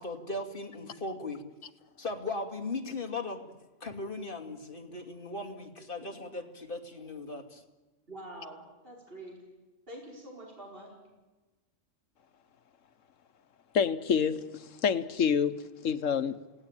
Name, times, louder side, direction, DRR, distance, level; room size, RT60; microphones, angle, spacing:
voice 1, 0.0-1.4 2.0-3.5 3.8-7.6, left 2 dB, 45° left, 3 dB, 2.7 m, -38 dB
voice 2, 8.1-9.4 9.9-10.9, right 1 dB, 45° right, -2 dB, 5.1 m, -46 dB
voice 3, 13.7-15.6 15.8-16.3, left 7 dB, 85° left, 12 dB, 1.4 m, -27 dB
29.5 x 18.0 x 9.0 m, 1.2 s
omnidirectional pair, 1.3 m